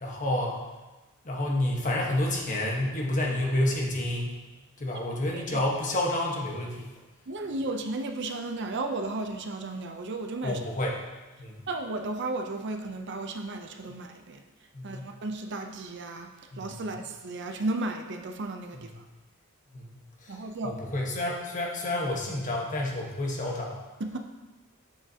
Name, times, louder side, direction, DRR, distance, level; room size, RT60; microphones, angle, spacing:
voice 1, 0.0-0.6 1.2-4.4 4.8-7.0 10.4-11.0 11.4-11.7 14.7-15.1 19.7-20.4 20.6-23.8, left 1 dB, 35° left, -2 dB, 1.2 m, -29 dB
voice 2, 7.3-10.6 11.7-14.4 14.8-16.3 16.6-18.9 20.3-20.7 24.0-24.2, right 2 dB, 55° right, 5 dB, 0.5 m, -34 dB
7.6 x 7.2 x 2.8 m, 1.2 s
head